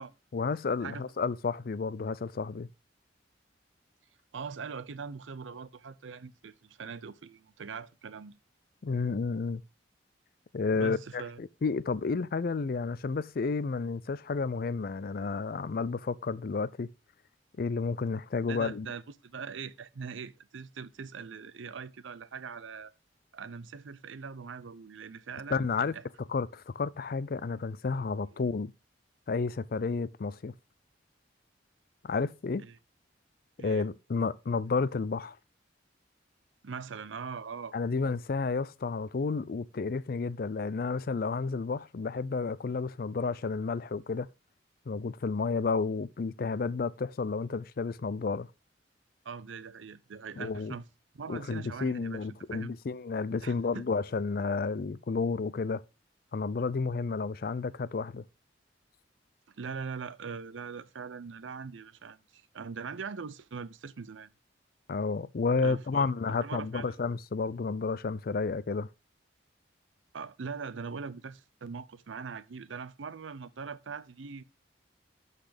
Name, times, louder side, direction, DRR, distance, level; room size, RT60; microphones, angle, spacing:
voice 1, 0.3-2.7 8.8-9.6 10.5-16.9 17.6-18.9 25.5-26.0 26.3-28.7 29.3-30.5 32.0-32.6 33.6-35.4 37.7-44.3 44.9-48.5 50.4-50.7 51.3-55.8 56.3-58.2 64.9-68.9, left 4 dB, 50° left, 0.4 m, -31 dB
voice 2, 4.3-8.4 10.7-11.4 18.5-22.9 23.3-26.0 32.6-32.8 33.6-33.9 36.6-37.7 49.2-50.8 51.1-52.7 53.4-53.9 59.5-64.3 65.6-67.0 70.1-74.4, right 5 dB, 90° right, 0.6 m, -41 dB
12.0 x 4.1 x 5.0 m
head